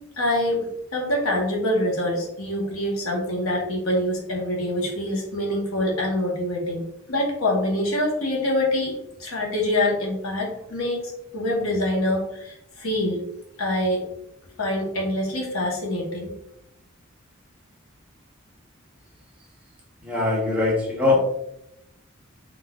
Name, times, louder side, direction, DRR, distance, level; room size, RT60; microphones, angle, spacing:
voice 1, 0.2-13.2 13.6-14.0 14.6-16.3, left 1 dB, 85° left, -1 dB, 0.9 m, -25 dB
voice 2, 20.0-21.2, left 3 dB, 5° right, -4 dB, 0.8 m, -21 dB
3.9 x 2.4 x 2.2 m, 0.80 s
head